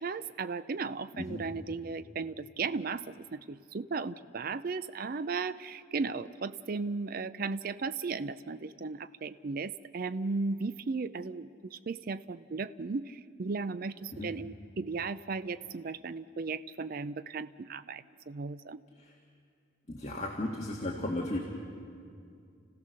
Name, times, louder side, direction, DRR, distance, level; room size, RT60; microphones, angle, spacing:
voice 1, 0.0-18.8, right 4 dB, 45° right, 14 dB, 0.4 m, -36 dB
voice 2, 19.9-21.4, left 1 dB, 35° left, -1 dB, 1.7 m, -35 dB
30.0 x 16.0 x 6.6 m, 2.3 s
head